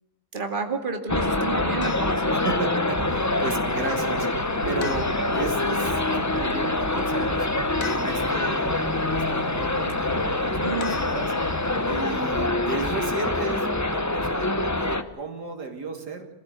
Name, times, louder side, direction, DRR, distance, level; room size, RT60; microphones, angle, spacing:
voice 1, 0.3-2.4 10.6-11.0, right 4 dB, 30° right, 4 dB, 2.5 m, -31 dB
sound 1, 1.1-15.0, left 2 dB, 15° left, 0.7 m, -25 dB
sound 2, 1.8-2.3 4.8-5.5 7.8-8.5 10.8-11.7, left 7 dB, 60° left, 1.7 m, -39 dB
voice 2, 2.3-7.5 7.9-11.3 11.9-16.3, right 3 dB, 85° right, 4 dB, 3.2 m, -34 dB
sound 3, 2.9-12.0, right 5 dB, 65° right, 1.8 m, -41 dB
26.5 x 15.5 x 8.2 m, 0.98 s
omnidirectional pair, 1.7 m